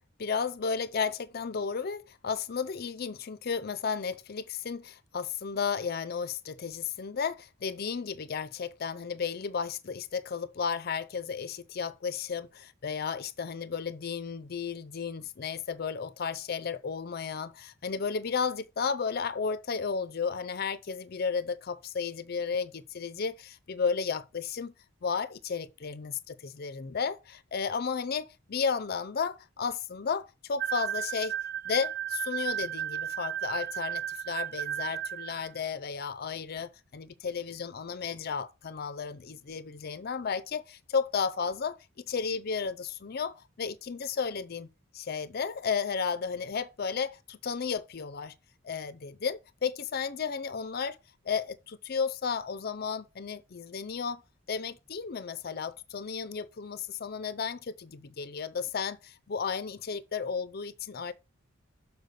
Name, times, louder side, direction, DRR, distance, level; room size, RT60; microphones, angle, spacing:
voice 1, 0.2-24.7 25.0-31.4 31.7-41.8 42.1-44.7 44.9-48.3 48.6-51.0 51.3-54.2 54.5-61.1, left 6 dB, 50° left, 0.5 m, -33 dB
sound 1, 30.6-35.5, right 10 dB, 50° right, 0.4 m, -34 dB
6.7 x 4.6 x 6.5 m
head